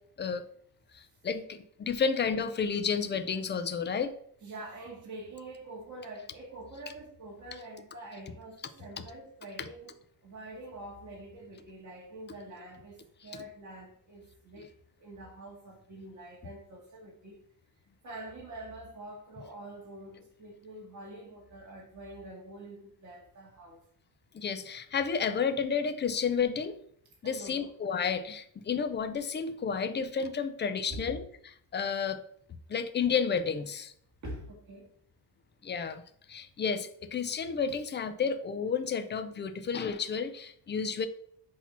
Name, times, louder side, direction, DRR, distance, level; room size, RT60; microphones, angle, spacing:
voice 1, 0.9-4.1 24.3-26.8 27.2-31.2 31.7-32.2 32.7-33.9 35.6-36.0 36.3-41.1, left 6 dB, 25° left, 9 dB, 0.5 m, -31 dB
voice 2, 4.4-14.7 15.0-17.4 18.0-23.8 27.2-27.7 30.9-31.2 34.2-34.9, right 1 dB, 45° right, -2 dB, 2.2 m, -45 dB
8.3 x 2.8 x 5.9 m, 0.66 s
cardioid pair, 170°, 41 cm